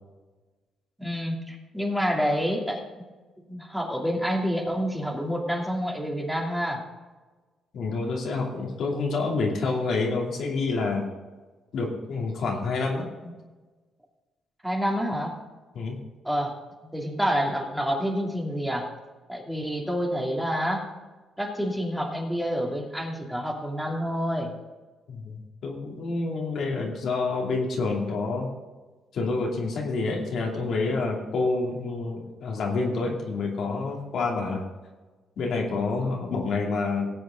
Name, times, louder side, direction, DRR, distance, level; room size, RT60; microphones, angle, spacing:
voice 1, 1.0-3.1 3.5-6.8 14.6-15.3 16.2-16.6 16.8-18.9 19.3-20.9 21.4-24.5, equal, 5° right, -1 dB, 2.8 m, -28 dB
voice 2, 7.7-11.1 11.7-13.3 15.7-16.0 25.1-28.5 29.1-34.6 35.4-37.1, left 3 dB, 65° left, -1 dB, 2.6 m, -28 dB
18.5 x 7.9 x 3.8 m, 1.3 s
cardioid pair, 90°, 0 cm